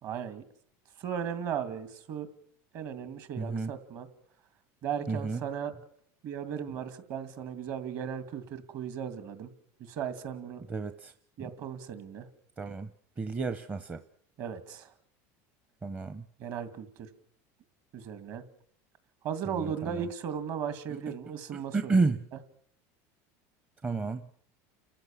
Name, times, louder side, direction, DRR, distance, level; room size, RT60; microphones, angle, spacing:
voice 1, 0.0-0.4 1.0-2.3 2.7-4.1 4.8-5.7 6.2-9.5 9.8-10.6 11.4-12.3 14.4-14.9 16.4-17.1 17.9-18.4 19.2-22.0, right 8 dB, 50° right, 11 dB, 2.5 m, -36 dB
voice 2, 3.4-3.7 5.1-5.4 10.7-11.1 12.6-12.9 13.2-14.0 15.8-16.2 19.5-20.1 21.5-22.2 23.8-24.2, right 3 dB, 20° right, 10 dB, 0.8 m, -31 dB
30.0 x 14.5 x 7.3 m, 0.67 s
cardioid pair, 150°, 8 cm